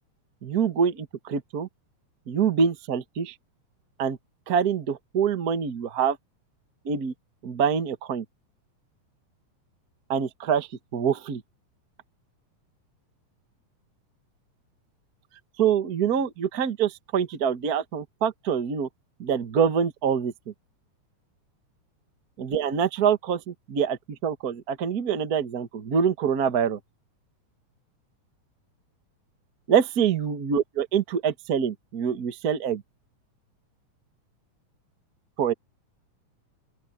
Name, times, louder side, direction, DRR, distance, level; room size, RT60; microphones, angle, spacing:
voice 1, 0.4-1.7 2.3-3.3 4.0-4.2 4.5-6.2 6.8-7.1 7.4-8.2 10.1-11.4 15.6-18.9 19.2-20.3 22.4-26.8 29.7-32.8 35.4-35.5, right 7 dB, 40° right, 1.4 m, -25 dB
open air
omnidirectional pair, 3.5 m